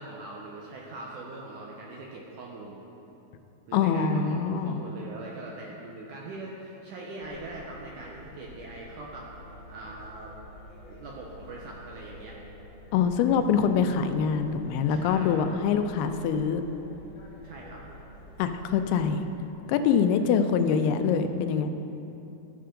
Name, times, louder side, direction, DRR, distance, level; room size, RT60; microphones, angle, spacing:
voice 1, 0.0-2.8 3.7-9.3 9.7-10.3 10.9-12.4 14.9-15.7 17.4-17.8, right 2 dB, 80° right, -2 dB, 1.8 m, -42 dB
voice 2, 3.7-4.8 12.9-16.6 18.4-19.3 19.7-21.7, left 6 dB, 90° left, 8 dB, 2.6 m, -24 dB
sound 1, 7.2-19.0, equal, 50° left, 1.4 m, -49 dB
13.5 x 6.9 x 3.7 m, 2.9 s
omnidirectional pair, 4.4 m